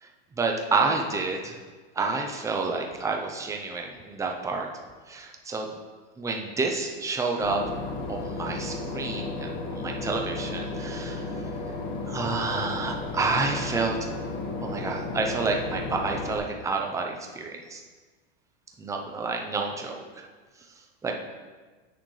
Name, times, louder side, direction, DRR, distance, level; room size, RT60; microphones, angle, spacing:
voice 1, 0.4-1.5 2.0-4.7 5.1-5.8 6.2-7.8 8.1-11.4 12.1-14.0 14.6-17.8 18.8-20.2 21.0-21.1, right 4 dB, 10° right, 2 dB, 0.7 m, -29 dB
Boat Water vehicle / Engine, 7.4-16.4, left 3 dB, 60° left, 1.6 m, -34 dB
10.0 x 6.4 x 3.2 m, 1.4 s
supercardioid pair, 150°, 31 cm